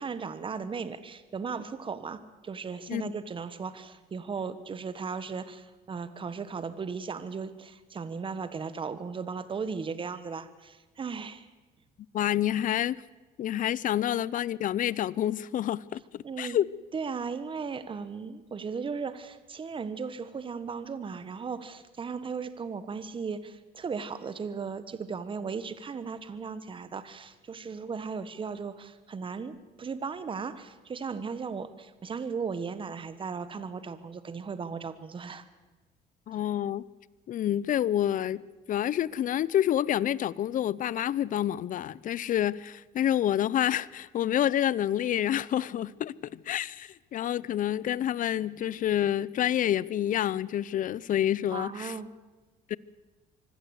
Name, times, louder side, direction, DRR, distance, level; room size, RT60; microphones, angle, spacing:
voice 1, 0.0-11.5 16.2-16.6 16.9-35.4 51.5-52.1, right 5 dB, 30° right, 1.3 m, -36 dB
voice 2, 12.1-13.0 13.4-16.7 36.3-36.8 37.3-38.4 38.7-51.9 52.7-52.8, left 11 dB, 50° left, 0.6 m, -28 dB
24.5 x 16.0 x 8.1 m
cardioid pair, 110°, 17 cm